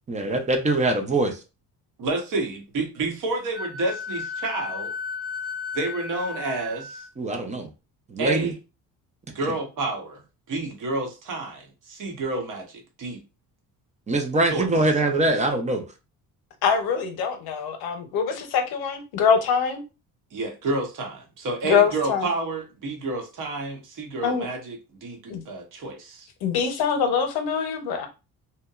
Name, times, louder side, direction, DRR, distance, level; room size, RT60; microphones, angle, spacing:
voice 1, 0.1-1.3 7.2-7.7 8.1-8.5 14.1-15.8, right 2 dB, 20° right, 0.4 m, -23 dB
voice 2, 2.0-4.9 5.7-7.1 8.2-8.5 9.3-10.2 10.5-13.2 14.5-14.7 20.3-24.8 25.0-26.3, right 2 dB, 60° right, 0.9 m, -29 dB
Wind instrument woodwind instrument, 3.5-7.0, left 5 dB, ahead, 1.0 m, -34 dB
voice 3, 16.6-19.8 21.6-22.3 24.2-24.5 25.3-25.4 26.4-28.1, left 6 dB, 85° left, 0.7 m, -24 dB
2.8 x 2.1 x 2.3 m
cardioid pair, 145°, 36 cm